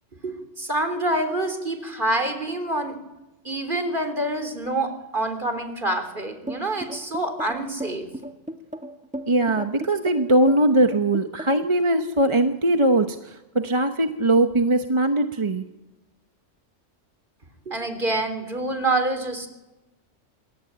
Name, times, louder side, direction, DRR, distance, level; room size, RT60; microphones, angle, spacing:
voice 1, 0.2-3.0 3.4-8.1 17.7-19.5, right 2 dB, 45° right, 9 dB, 3.9 m, -26 dB
sound 1, 6.5-11.7, right 1 dB, 5° right, 2.1 m, -35 dB
voice 2, 9.3-15.6, right 1 dB, 25° right, 7 dB, 1.0 m, -21 dB
28.0 x 23.5 x 8.9 m, 1.0 s
omnidirectional pair, 1.3 m